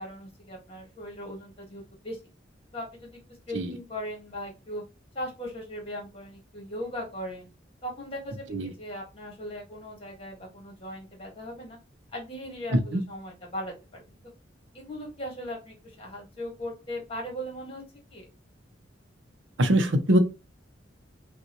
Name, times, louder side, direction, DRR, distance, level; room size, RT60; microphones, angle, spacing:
voice 1, 0.0-2.2 2.7-3.2 3.5-4.8 5.2-7.5 7.8-11.8 12.1-14.2 14.7-17.8 18.1-18.2, equal, 30° left, 1.7 m, -38 dB
voice 2, 19.6-20.2, right 1 dB, 70° right, 0.7 m, -23 dB
5.3 x 2.4 x 3.0 m
head